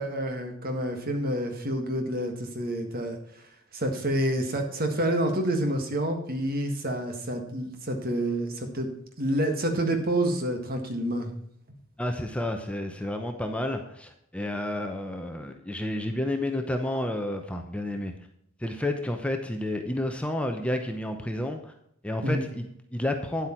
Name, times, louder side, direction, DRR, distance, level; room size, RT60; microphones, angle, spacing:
voice 1, 0.0-3.2 3.7-8.9 9.2-11.3 22.2-22.4, right 1 dB, 45° right, 5 dB, 1.8 m, -28 dB
voice 2, 12.0-18.1 18.6-21.7 22.0-23.5, left 1 dB, 5° left, 4 dB, 0.8 m, -30 dB
10.0 x 8.1 x 4.5 m, 0.73 s
head